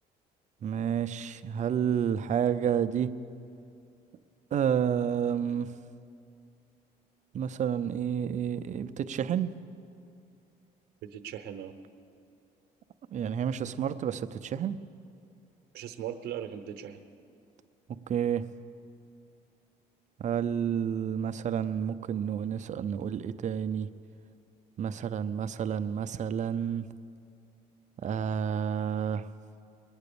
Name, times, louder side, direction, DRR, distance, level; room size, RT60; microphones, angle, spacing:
voice 1, 0.6-3.1 4.5-5.7 7.3-9.5 13.1-14.8 18.1-18.4 20.2-23.9 24.8-26.9 28.0-29.3, right 8 dB, 45° right, 11 dB, 0.6 m, -30 dB
voice 2, 11.0-11.7 15.7-17.0, right 9 dB, 75° right, 7 dB, 0.9 m, -39 dB
21.0 x 8.9 x 6.9 m, 2.5 s
cardioid pair, 110°, 17 cm